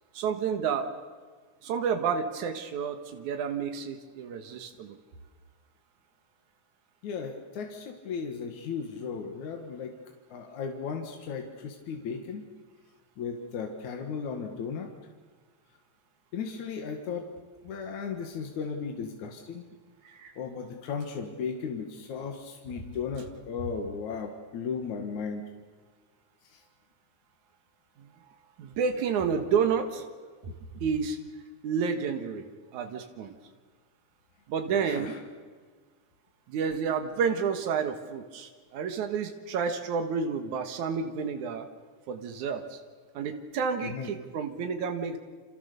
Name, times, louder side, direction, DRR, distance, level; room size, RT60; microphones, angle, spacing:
voice 1, 0.1-0.9 1.6-5.0 20.0-20.3 28.0-30.0 30.4-30.5 30.8-31.2 31.6-33.4 34.5-35.1 36.5-41.7 42.1-42.8 43.1-45.2, right 6 dB, 85° right, 6 dB, 2.9 m, -30 dB
voice 2, 7.0-9.9 10.3-12.4 13.2-14.9 16.3-17.3 17.6-19.7 20.4-25.5 26.4-26.6 34.7-35.2 43.8-44.1, left 6 dB, 75° left, 3 dB, 3.2 m, -36 dB
29.0 x 27.5 x 6.9 m, 1.5 s
omnidirectional pair, 3.4 m